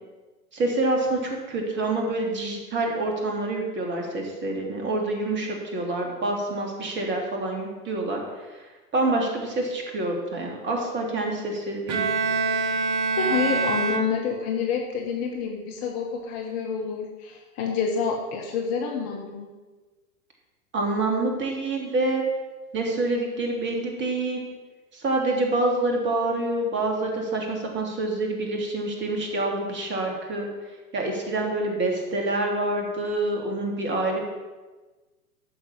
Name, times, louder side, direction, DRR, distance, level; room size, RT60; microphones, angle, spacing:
voice 1, 0.5-8.2 8.9-12.1 20.7-22.2 22.7-24.5 24.9-30.5 30.9-34.2, right 2 dB, 25° right, 1 dB, 3.1 m, -27 dB
Bowed string instrument, 11.9-14.6, right 4 dB, 50° right, 1.5 m, -25 dB
voice 2, 13.2-19.5, left 6 dB, 35° left, 2 dB, 1.6 m, -28 dB
14.5 x 5.9 x 7.4 m, 1.3 s
figure-of-eight pair, 110°, 45 cm